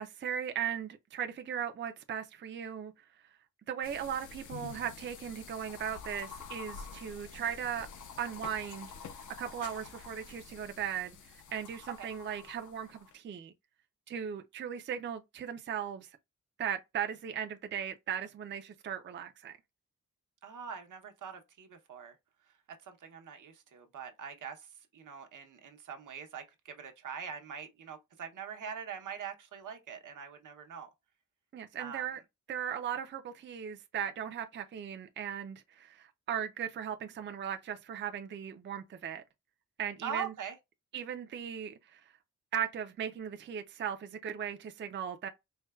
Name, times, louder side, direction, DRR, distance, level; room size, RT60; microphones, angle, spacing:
voice 1, 0.0-2.9 3.7-7.9 8.2-8.9 9.4-13.5 14.1-16.1 16.6-19.5 31.5-32.2 32.5-39.2 39.8-40.3 40.9-42.0 42.5-45.3, right 9 dB, 40° right, 0.4 m, -37 dB
sound 1, 3.8-13.1, left 6 dB, 75° left, 0.7 m, -48 dB
voice 2, 20.4-22.2 22.8-30.9 31.8-32.1 40.0-40.6, right 7 dB, 80° right, 0.8 m, -43 dB
4.4 x 2.1 x 2.2 m
wide cardioid pair, 120°, 31 cm